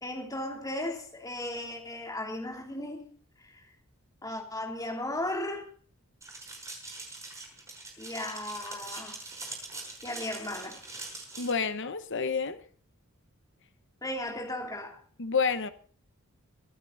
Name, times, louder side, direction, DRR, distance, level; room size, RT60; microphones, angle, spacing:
voice 1, 0.0-3.0 3.4-3.7 4.2-5.7 8.0-9.2 10.0-10.8 14.0-15.0, left 1 dB, 15° left, 3.1 m, -36 dB
sound 1, 6.2-11.5, right 3 dB, 15° right, 5.7 m, -43 dB
voice 2, 11.4-12.6 15.2-15.7, left 5 dB, 60° left, 1.0 m, -29 dB
25.0 x 9.1 x 4.0 m
head